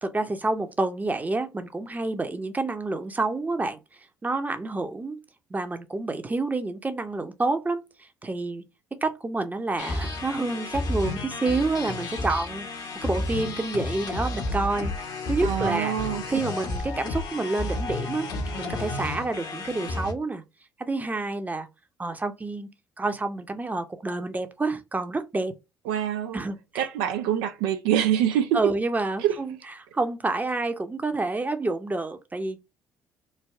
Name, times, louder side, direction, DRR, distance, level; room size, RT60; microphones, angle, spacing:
voice 1, 0.0-3.8 4.2-5.2 5.5-7.8 8.2-8.6 8.9-15.9 16.3-18.3 18.6-20.4 20.9-21.7 22.0-22.7 23.0-25.5 26.3-26.9 28.5-29.5 29.9-32.6, right 3 dB, 20° right, 0.7 m, -28 dB
sound 1, 9.8-20.1, left 2 dB, 55° left, 0.9 m, -32 dB
voice 2, 15.4-16.2 25.9-26.4 26.7-28.7 29.2-29.4, right 10 dB, 80° right, 0.4 m, -25 dB
3.3 x 2.2 x 3.3 m
hypercardioid pair, 55°, 8 cm